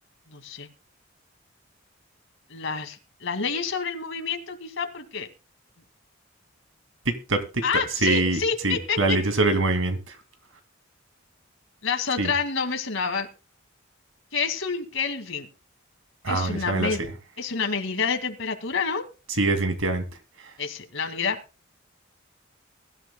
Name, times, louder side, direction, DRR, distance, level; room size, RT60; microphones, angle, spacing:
voice 1, 0.3-0.7 2.5-5.3 7.6-9.2 11.8-13.3 14.3-15.5 16.3-17.0 17.4-19.0 20.6-21.4, left 5 dB, 70° left, 5 dB, 2.2 m, -28 dB
voice 2, 7.1-7.4 8.0-10.0 12.2-12.3 16.2-16.9 19.4-20.0, right 2 dB, 80° right, 8 dB, 2.4 m, -23 dB
22.5 x 12.5 x 2.2 m, 0.31 s
head